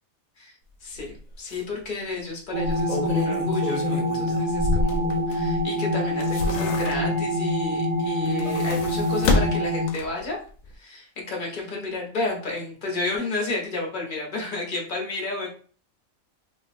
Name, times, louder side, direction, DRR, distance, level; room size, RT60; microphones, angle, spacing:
voice 1, 0.8-10.4 10.8-15.5, left 3 dB, 45° left, -1 dB, 0.8 m, -32 dB
sound 1, 1.0-1.1 1.5-1.6 2.5-5.6 6.0-7.3 8.2-10.3 10.6-10.7, left 3 dB, 80° left, 1.0 m, -28 dB
sound 2, 2.5-9.8, left 1 dB, 60° right, 0.5 m, -25 dB
3.0 x 2.4 x 2.4 m, 0.42 s
omnidirectional pair, 1.4 m